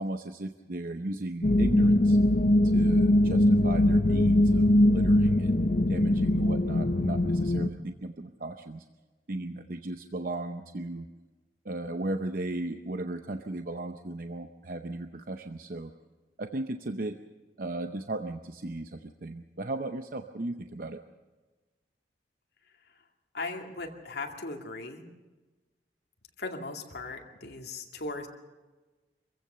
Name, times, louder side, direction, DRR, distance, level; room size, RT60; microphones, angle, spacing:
voice 1, 0.0-2.2 2.6-8.8 9.3-11.1 11.6-15.9 16.4-17.1 17.6-21.0, right 2 dB, 50° right, 7 dB, 0.7 m, -36 dB
sound 1, 1.4-7.7, left 1 dB, 50° left, 0.7 m, -22 dB
voice 2, 23.3-25.0 26.4-28.3, left 3 dB, 70° left, 2 dB, 2.3 m, -38 dB
25.0 x 15.5 x 6.8 m, 1.2 s
head